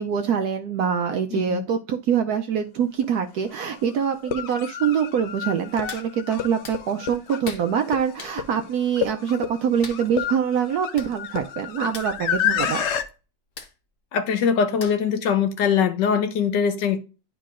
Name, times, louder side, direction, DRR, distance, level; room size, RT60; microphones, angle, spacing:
voice 1, 0.0-12.8, right 7 dB, 70° right, 0.9 m, -24 dB
voice 2, 1.3-1.6 14.1-17.0, left 7 dB, 75° left, 1.3 m, -22 dB
sound 1, 3.0-3.1 4.1-13.0, left 9 dB, 90° left, 0.6 m, -29 dB
Hands, 5.9-6.1 6.6-6.8 7.4-7.7 8.2-8.4 9.8-10.0 10.7-10.8 10.9-11.1 11.4-11.6 11.9-12.1 13.6-13.7 14.8-15.1 15.6-15.7, left 4 dB, 45° left, 0.8 m, -39 dB
11.0 x 4.6 x 2.5 m
omnidirectional pair, 2.1 m